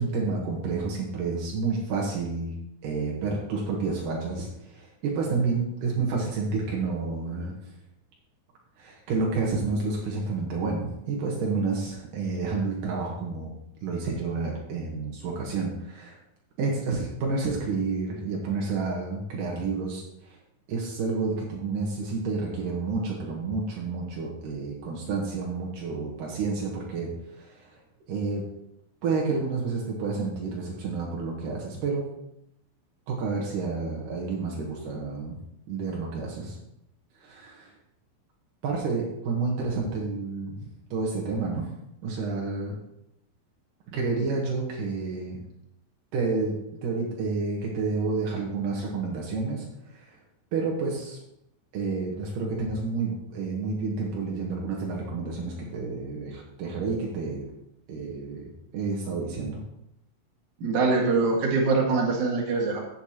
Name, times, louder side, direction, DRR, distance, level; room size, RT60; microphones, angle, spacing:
voice 1, 0.0-2.6 2.8-7.5 8.8-13.5 13.8-16.2 16.6-20.4 20.7-27.8 28.1-28.4 29.0-32.0 33.1-35.4 35.7-36.5 37.2-37.7 38.6-40.6 40.9-41.7 42.0-42.8 43.9-45.4 46.1-50.2 50.5-51.2 51.7-57.5 57.9-59.6, right 4 dB, 80° right, -2 dB, 1.9 m, -30 dB
voice 2, 60.6-62.8, right 3 dB, 55° right, -1 dB, 2.2 m, -23 dB
16.0 x 6.6 x 2.9 m, 0.81 s
omnidirectional pair, 5.8 m